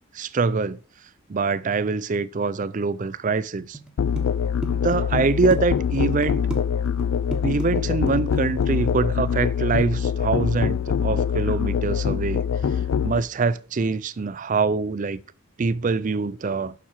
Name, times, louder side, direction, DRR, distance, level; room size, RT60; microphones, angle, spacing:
voice 1, 0.1-0.8 1.3-3.8 4.7-6.4 7.4-12.5 13.0-15.2 15.6-16.7, right 4 dB, 40° right, 0.4 m, -24 dB
sound 1, 3.7-5.6 5.9-6.6 6.9-7.1 7.3-8.7, right 1 dB, 5° right, 1.2 m, -33 dB
Musical instrument, 4.0-13.2, left 7 dB, 85° left, 0.4 m, -24 dB
7.2 x 6.0 x 6.3 m
head